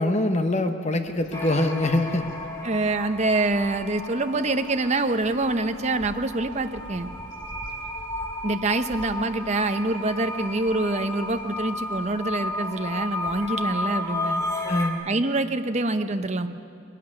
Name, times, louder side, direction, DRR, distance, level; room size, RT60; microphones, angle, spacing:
voice 1, 0.0-2.3 14.6-15.0, left 1 dB, 35° left, 7 dB, 0.9 m, -24 dB
Bird vocalization bird call bird song, 1.0-14.3, equal, 60° left, 3.0 m, -49 dB
sound 1, 1.3-14.9, left 2 dB, 15° left, 1.6 m, -33 dB
voice 2, 2.6-7.1 8.4-14.4 15.1-16.5, right 2 dB, 35° right, 8 dB, 0.8 m, -25 dB
21.0 x 12.5 x 9.9 m, 2.5 s
head